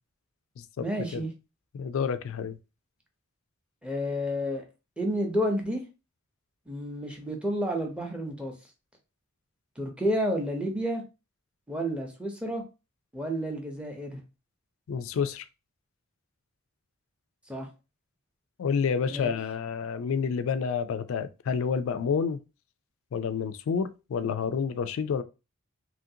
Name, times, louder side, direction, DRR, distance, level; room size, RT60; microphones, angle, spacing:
voice 1, 0.8-1.3 3.8-4.6 5.0-5.8 6.7-8.5 9.8-11.0 11.7-12.6 13.1-14.2 17.5-17.7 19.1-19.3, equal, 5° right, 0.6 m, -30 dB
voice 2, 1.7-2.6 14.9-15.4 18.6-22.4 23.1-25.2, left 6 dB, 70° left, 0.3 m, -29 dB
3.0 x 2.5 x 2.7 m
head